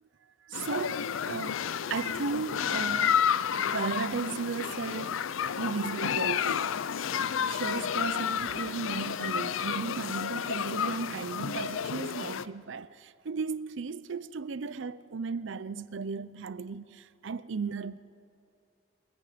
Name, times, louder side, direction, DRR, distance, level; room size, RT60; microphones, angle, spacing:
voice 1, 0.4-5.2 5.6-6.8 7.5-18.0, right 5 dB, 70° right, 0.6 m, -35 dB
sound 1, 0.5-12.5, left 8 dB, 85° left, 0.5 m, -31 dB
27.0 x 22.5 x 5.1 m
head